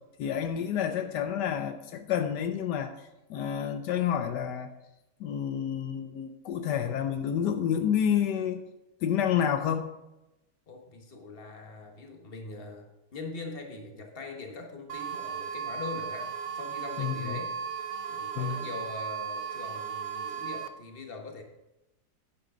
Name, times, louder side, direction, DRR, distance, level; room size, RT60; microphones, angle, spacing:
voice 1, 0.2-4.7 5.2-8.6 9.0-9.9 17.0-17.4 18.3-18.6, left 9 dB, 80° left, 8 dB, 1.3 m, -29 dB
voice 2, 10.7-12.9 13.1-17.6 18.1-21.4, left 3 dB, 35° left, 2 dB, 1.6 m, -42 dB
sound 1, 14.9-20.7, right 7 dB, 85° right, 1.4 m, -36 dB
10.5 x 9.7 x 3.9 m, 0.96 s
omnidirectional pair, 1.8 m